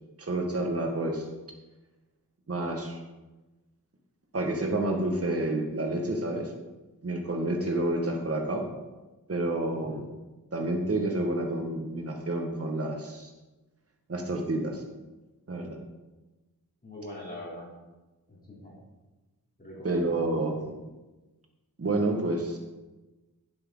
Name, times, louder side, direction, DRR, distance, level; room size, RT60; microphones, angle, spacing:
voice 1, 0.2-1.3 2.5-3.0 4.3-6.5 7.0-8.7 9.3-10.1 10.5-13.3 14.1-14.8 15.5-15.8 19.8-20.7 21.8-22.6, right 2 dB, 40° right, 3 dB, 1.8 m, -29 dB
voice 2, 9.7-10.0 16.8-17.7 18.3-18.8 19.6-20.3, left 1 dB, 25° left, -5 dB, 3.5 m, -43 dB
10.0 x 7.9 x 4.0 m, 1.1 s
wide cardioid pair, 80°, 36 cm